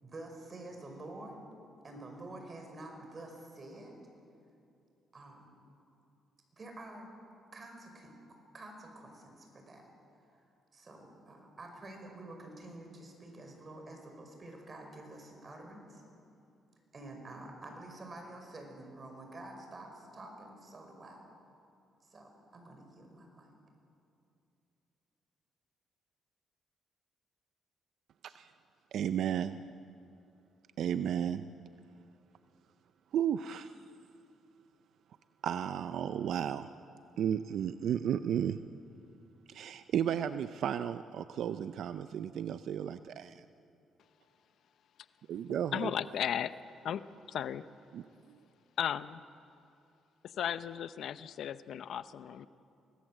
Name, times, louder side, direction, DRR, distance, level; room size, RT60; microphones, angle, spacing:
voice 1, 0.0-1.4 1.8-3.9 5.1-5.5 6.5-7.1 7.5-8.1 8.5-9.9 10.3-10.4 10.7-16.0 16.9-21.3 22.0-23.5, right 2 dB, 35° right, 3 dB, 5.5 m, -48 dB
voice 2, 28.9-29.6 30.8-31.5 33.1-33.8 35.4-36.7 37.2-38.6 39.5-43.4 45.3-45.9 47.9-48.4, right 9 dB, 70° right, 11 dB, 0.6 m, -33 dB
voice 3, 45.7-46.5 46.8-47.0 47.3-47.6 48.8-49.2 50.4-52.5, left 9 dB, 70° left, 14 dB, 0.7 m, -35 dB
24.5 x 19.0 x 7.7 m, 2.6 s
cardioid pair, 90°, 0 cm